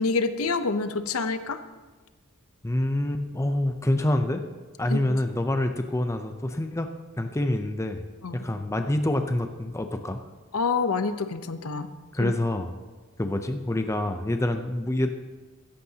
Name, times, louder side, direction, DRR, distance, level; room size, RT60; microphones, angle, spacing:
voice 1, 0.0-1.6 4.9-5.2 8.2-8.4 10.5-11.9 12.2-12.3, left 4 dB, 70° left, 10 dB, 0.7 m, -27 dB
voice 2, 2.6-4.4 4.8-6.9 7.2-8.0 8.3-10.2 12.1-12.7 13.2-15.1, left 1 dB, 15° left, 6 dB, 0.5 m, -26 dB
16.0 x 14.0 x 2.8 m, 1.3 s
head